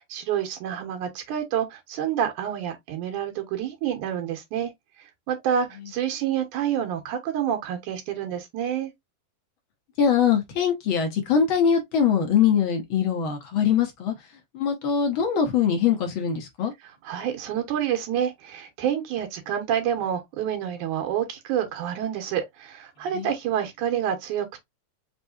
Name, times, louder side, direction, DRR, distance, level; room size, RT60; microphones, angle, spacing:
voice 1, 0.1-4.7 5.3-8.9 17.0-24.6, right 9 dB, 85° right, 2.5 m, -28 dB
voice 2, 10.0-14.1 14.5-16.7 23.1-23.3, left 7 dB, 65° left, 1.3 m, -22 dB
5.3 x 3.2 x 2.6 m
omnidirectional pair, 3.5 m